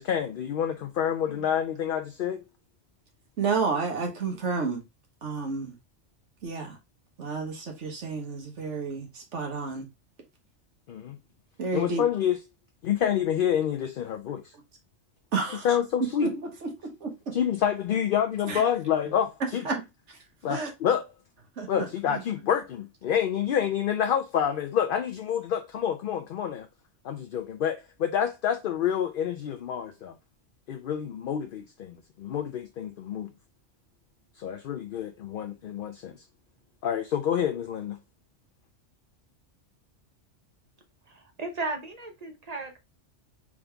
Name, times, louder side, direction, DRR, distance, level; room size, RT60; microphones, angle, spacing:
voice 1, 0.0-2.4 10.9-11.2 11.7-12.4 12.8-14.5 15.6-16.3 17.3-19.6 20.4-21.0 21.7-26.7 27.0-30.1 30.7-33.3 34.4-36.2 36.8-38.0, left 9 dB, 60° left, 0.6 m, -28 dB
voice 2, 3.4-4.8 5.2-5.7 6.4-6.8 7.2-9.9 11.6-12.0 15.3-15.7 16.2-17.1 18.5-18.6 19.6-19.8 20.5-20.7 21.6-22.2, right 4 dB, 75° right, 1.5 m, -31 dB
voice 3, 41.1-42.8, right 3 dB, 35° right, 1.0 m, -36 dB
3.7 x 3.6 x 3.4 m
omnidirectional pair, 1.2 m